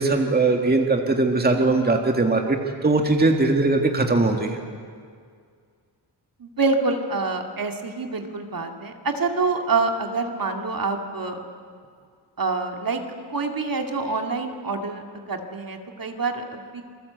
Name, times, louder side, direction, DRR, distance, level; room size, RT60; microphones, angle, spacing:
voice 1, 0.0-2.6 2.8-4.6, right 3 dB, 20° right, 3 dB, 2.0 m, -20 dB
voice 2, 6.4-11.4 12.4-13.0 13.3-15.0 15.3-16.8, right 3 dB, 45° right, 3 dB, 2.4 m, -26 dB
27.5 x 21.0 x 8.1 m, 2.1 s
wide cardioid pair, 115°, 47 cm